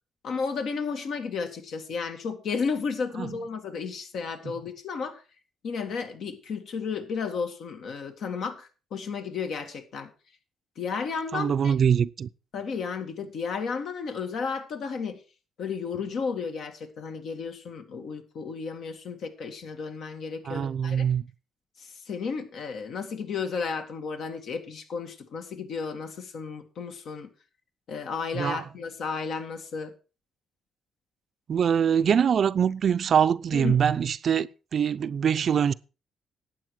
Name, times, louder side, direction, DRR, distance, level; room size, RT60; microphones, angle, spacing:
voice 1, 0.2-5.2 5.6-10.1 10.8-11.7 12.5-15.2 15.6-21.1 21.8-27.3 27.9-29.9 33.5-33.8, left 5 dB, 70° left, 2.0 m, -33 dB
voice 2, 11.3-12.3 20.5-21.2 28.3-28.6 31.5-35.7, right 8 dB, 55° right, 0.5 m, -23 dB
12.0 x 8.7 x 4.8 m
cardioid pair, 90°, 0 cm